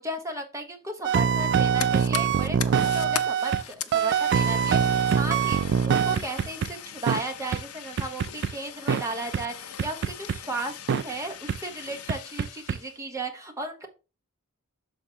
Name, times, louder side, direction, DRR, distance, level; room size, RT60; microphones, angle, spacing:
voice 1, 0.0-13.9, right 2 dB, 15° right, 3 dB, 1.1 m, -35 dB
sound 1, 1.0-3.6 3.9-6.7 7.1-7.2 7.5-7.6 8.0-8.5 8.9-9.0 9.3-9.4 9.8-10.4 10.9-11.0 11.5-11.6 12.1-12.8, right 7 dB, 50° right, 0.3 m, -24 dB
Fire, 1.4-13.0, left 10 dB, 70° left, 0.5 m, -40 dB
6.7 x 4.2 x 4.4 m, 0.31 s
head